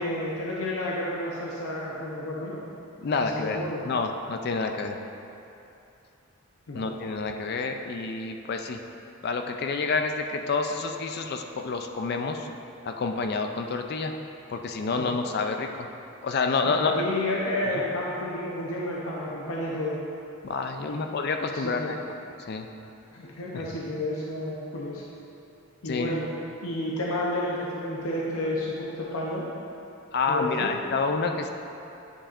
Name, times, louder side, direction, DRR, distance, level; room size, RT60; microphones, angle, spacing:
voice 1, 0.0-2.6 3.2-3.8 6.7-6.9 15.0-15.1 16.7-20.0 20.8-21.0 21.5-22.0 23.1-25.0 25.8-26.3 26.6-29.5 30.3-30.7, left 1 dB, 75° left, -4 dB, 0.7 m, -31 dB
voice 2, 3.0-3.6 3.8-5.0 6.7-8.8 9.2-12.5 12.9-14.1 14.5-15.9 16.2-16.9 20.4-22.0 22.4-22.7 23.5-23.6 25.9-26.2 30.1-31.5, left 4 dB, 45° left, 5 dB, 0.3 m, -28 dB
9.7 x 5.4 x 2.5 m, 2.8 s
head